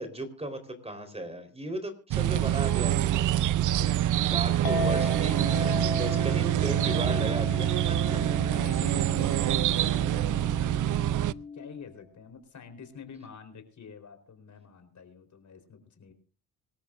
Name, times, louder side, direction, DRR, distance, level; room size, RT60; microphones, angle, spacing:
voice 1, 0.0-3.2 4.3-8.2, right 1 dB, 15° right, 8 dB, 4.2 m, -36 dB
sound 1, 2.1-11.3, right 13 dB, 55° right, 0.6 m, -26 dB
voice 2, 2.2-2.5 2.9-4.7 5.2-5.3 5.7-5.9 8.5-11.2 11.5-16.1, left 6 dB, 50° left, 7 dB, 4.2 m, -48 dB
Chink clink, 4.7-10.9, left 4 dB, 70° left, 1.7 m, -38 dB
sound 2, 5.1-11.9, left 5 dB, 15° left, 0.8 m, -41 dB
25.5 x 13.0 x 2.6 m, 0.38 s
supercardioid pair, 70°, 37 cm